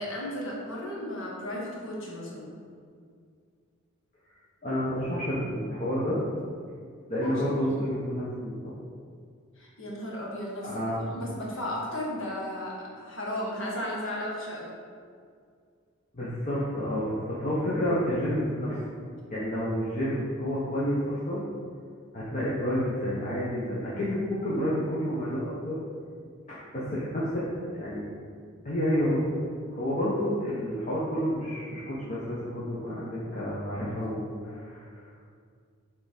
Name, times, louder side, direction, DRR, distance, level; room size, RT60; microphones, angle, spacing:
voice 1, 0.0-2.5 7.2-7.8 9.5-14.7, left 1 dB, 65° left, -4 dB, 1.6 m, -35 dB
voice 2, 4.6-6.2 7.1-8.7 10.6-11.1 16.1-18.8 19.3-21.4 22.1-25.7 26.5-28.0 28.6-29.2 29.7-35.3, equal, 35° left, -9 dB, 1.1 m, -30 dB
6.9 x 3.7 x 5.1 m, 2.2 s
head